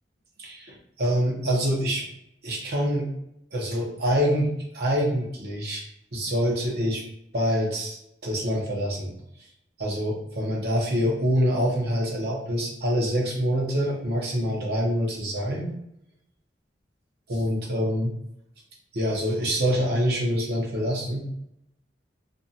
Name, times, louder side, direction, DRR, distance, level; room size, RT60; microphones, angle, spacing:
voice 1, 0.4-2.0 2.4-3.1 3.5-5.8 6.1-7.0 7.3-8.0 8.2-9.1 9.8-15.7 17.3-18.1 18.9-21.3, equal, 60° right, -3 dB, 0.8 m, -25 dB
2.6 x 2.3 x 2.7 m, 0.78 s
head